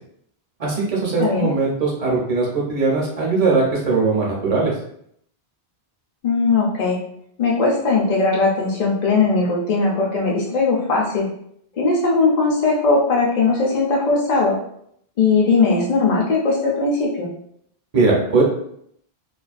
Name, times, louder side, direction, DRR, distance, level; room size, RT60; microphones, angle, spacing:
voice 1, 0.6-4.7 17.9-18.4, right 3 dB, 45° right, -3 dB, 0.7 m, -20 dB
voice 2, 6.2-7.0 7.4-11.3 11.7-14.6 15.2-17.3, left 3 dB, 50° left, -3 dB, 0.5 m, -19 dB
2.4 x 2.2 x 2.4 m, 0.71 s
omnidirectional pair, 1.1 m